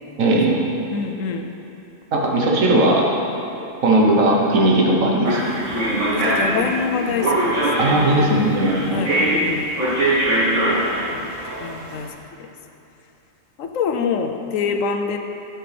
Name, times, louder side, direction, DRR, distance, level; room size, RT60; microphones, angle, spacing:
voice 1, 0.2-0.6 2.1-3.1 3.8-5.4 7.8-9.0, right 1 dB, 80° right, -2 dB, 1.5 m, -17 dB
voice 2, 0.9-1.5 6.1-7.7 8.1-8.2 8.9-9.7 11.1-11.3 11.6-12.1 12.4-12.5 13.6-15.2, left 5 dB, 80° left, 5 dB, 1.0 m, -25 dB
sound 1, 5.2-11.9, right 1 dB, 65° right, 1.8 m, -22 dB
10.5 x 7.5 x 3.4 m, 2.9 s
omnidirectional pair, 1.4 m